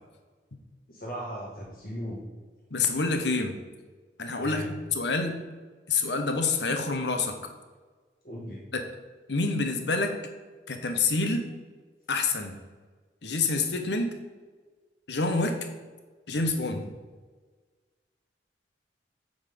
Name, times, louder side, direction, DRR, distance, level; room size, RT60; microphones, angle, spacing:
voice 1, 0.9-2.3 2.8-2.9 4.4-4.7 8.2-8.6, equal, 55° left, -4 dB, 1.6 m, -37 dB
voice 2, 2.7-3.6 4.2-4.6 4.9-5.4 5.9-7.5 8.7-8.9 9.3-10.1 10.7-11.5 12.1-12.5 13.2-14.1 15.1-15.6 16.3-16.9, left 3 dB, 80° left, 6 dB, 1.1 m, -27 dB
8.6 x 4.0 x 6.9 m, 1.4 s
head